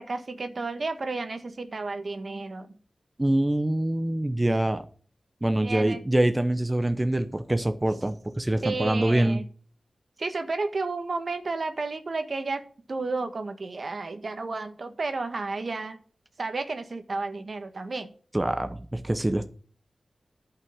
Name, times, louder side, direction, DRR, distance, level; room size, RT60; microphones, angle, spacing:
voice 1, 0.0-2.7 5.6-6.0 8.6-9.4 10.2-12.6 12.9-16.0 16.4-18.1, right 3 dB, 60° right, 8 dB, 1.5 m, -32 dB
voice 2, 3.2-4.8 5.4-9.4 18.3-19.5, right 1 dB, 20° right, 9 dB, 0.9 m, -25 dB
11.0 x 5.7 x 7.3 m, 0.43 s
cardioid pair, 60°, 0 cm